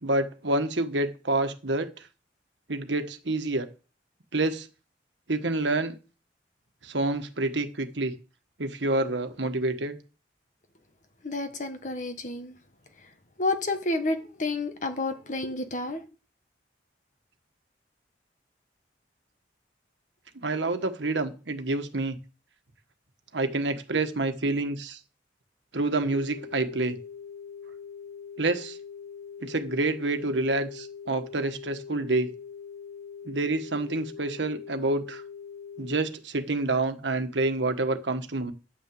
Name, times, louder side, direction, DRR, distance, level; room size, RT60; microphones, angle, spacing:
voice 1, 0.0-1.9 2.7-3.7 4.3-4.7 5.3-6.0 6.8-8.1 8.6-10.0 20.4-22.2 23.3-25.0 25.7-27.0 28.4-28.8 29.4-32.3 33.2-35.2 35.8-38.5, right 2 dB, 80° right, 1.4 m, -28 dB
voice 2, 11.2-12.5 13.4-16.0, left 2 dB, 45° left, 1.4 m, -30 dB
sound 1, 26.0-36.0, left 6 dB, 60° left, 3.3 m, -43 dB
10.5 x 5.9 x 7.7 m
head